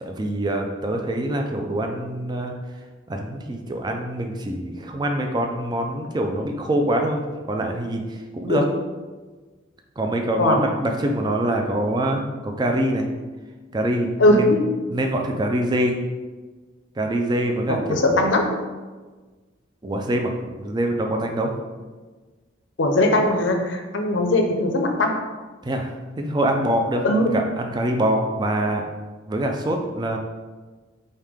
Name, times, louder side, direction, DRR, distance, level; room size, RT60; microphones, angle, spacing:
voice 1, 0.0-2.5 3.1-7.2 7.5-8.6 10.0-13.1 13.7-14.5 14.9-16.0 17.0-18.2 19.8-21.5 25.6-27.0 27.3-28.8 29.3-30.2, right 1 dB, 20° right, 3 dB, 0.4 m, -24 dB
voice 2, 14.2-14.6 17.7-18.5 22.8-25.1 27.0-27.3, left 1 dB, 70° left, 4 dB, 0.6 m, -19 dB
5.0 x 2.8 x 3.5 m, 1.3 s
head